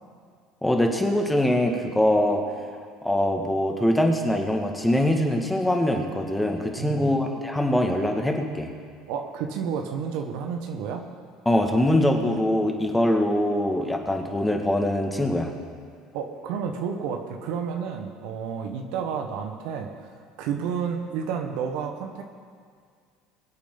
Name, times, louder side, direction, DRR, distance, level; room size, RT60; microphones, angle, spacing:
voice 1, 0.6-2.4 3.0-8.7 11.5-15.5, left 1 dB, 10° left, 2 dB, 2.1 m, -23 dB
voice 2, 6.8-7.1 9.1-11.0 16.1-20.1 20.4-22.2, right 7 dB, 70° right, 4 dB, 1.3 m, -31 dB
23.0 x 8.4 x 4.0 m, 2.1 s
hypercardioid pair, 75°, 0 cm